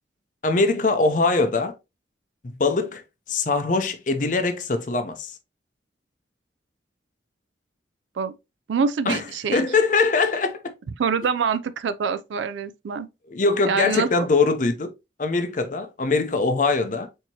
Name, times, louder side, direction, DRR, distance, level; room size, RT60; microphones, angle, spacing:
voice 1, 0.4-1.7 2.4-3.0 3.3-5.3 9.1-9.2 9.5-10.6 13.3-14.9 15.2-17.1, left 3 dB, 45° left, 0.6 m, -22 dB
voice 2, 8.7-9.7 11.0-13.1 13.6-14.3, right 5 dB, 80° right, 0.4 m, -25 dB
4.5 x 2.8 x 2.7 m
head